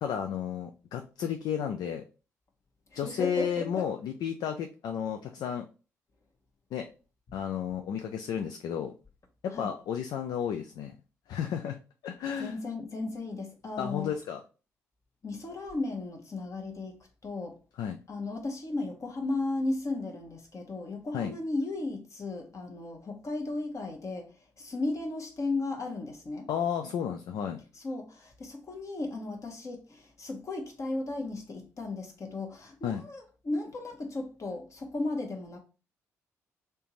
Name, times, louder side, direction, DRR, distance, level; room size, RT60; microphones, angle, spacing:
voice 1, 0.0-2.0 2.9-5.7 6.7-6.9 7.3-8.9 9.4-11.0 11.3-11.8 12.0-12.6 13.8-14.4 17.8-18.0 21.1-21.3 26.5-27.6 32.8-33.0, left 8 dB, 60° left, 0.3 m, -32 dB
voice 2, 2.9-3.9 9.5-9.7 12.4-14.1 15.2-17.0 17.2-17.5 18.1-24.3 24.6-26.5 27.7-35.6, left 2 dB, 40° left, 0.9 m, -35 dB
3.3 x 2.8 x 3.0 m
hypercardioid pair, 45°, 8 cm